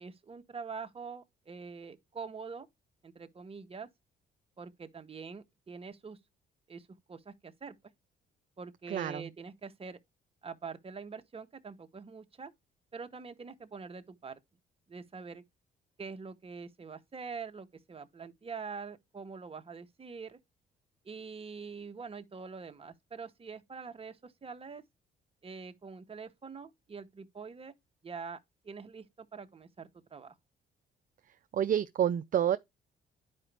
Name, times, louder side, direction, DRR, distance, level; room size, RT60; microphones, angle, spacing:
voice 1, 0.0-2.7 3.0-3.9 4.6-6.2 6.7-7.8 8.6-10.0 10.4-12.5 12.9-14.4 14.9-15.4 16.0-20.4 21.0-24.8 25.4-27.7 28.0-30.3, right 5 dB, 30° right, 1.0 m, -45 dB
voice 2, 8.9-9.3 31.5-32.6, right 10 dB, 45° right, 0.4 m, -28 dB
10.5 x 4.9 x 3.4 m
cardioid pair, 90°, 20 cm